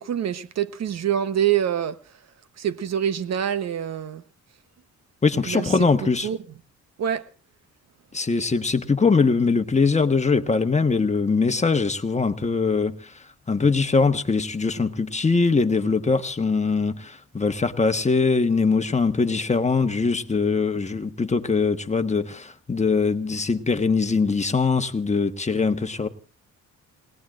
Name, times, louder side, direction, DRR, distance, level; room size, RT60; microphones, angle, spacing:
voice 1, 0.0-2.0 2.6-4.2 5.5-5.7 6.2-6.4 7.0-7.2, right 9 dB, 60° right, 1.1 m, -25 dB
voice 2, 5.2-6.3 8.1-13.1 13.5-26.1, left 4 dB, 20° left, 1.4 m, -22 dB
28.5 x 18.5 x 2.5 m
cardioid pair, 90°, 30 cm